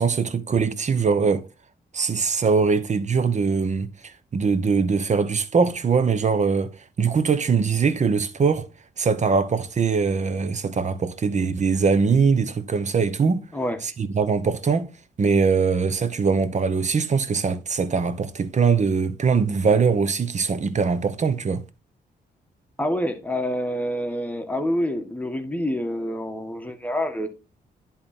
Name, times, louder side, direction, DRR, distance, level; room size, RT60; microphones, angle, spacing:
voice 1, 0.0-1.4 1.9-3.9 4.3-6.7 7.0-8.7 9.0-13.4 13.8-14.9 15.2-21.6, right 5 dB, 45° right, 1.0 m, -22 dB
voice 2, 22.8-27.3, equal, 10° left, 1.5 m, -27 dB
10.5 x 3.8 x 4.4 m
cardioid pair, 75°, 17 cm